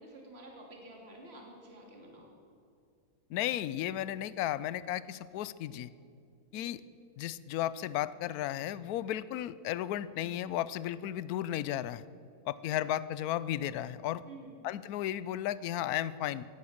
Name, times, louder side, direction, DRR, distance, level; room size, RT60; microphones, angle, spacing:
voice 1, 0.0-2.3 6.5-6.7 14.3-14.6, right 2 dB, 40° right, 0 dB, 2.7 m, -50 dB
voice 2, 3.3-5.9 6.5-6.8 7.2-12.0 12.5-14.2 14.6-16.5, left 12 dB, 75° left, 17 dB, 1.0 m, -34 dB
16.5 x 11.5 x 7.2 m, 2.5 s
omnidirectional pair, 1.7 m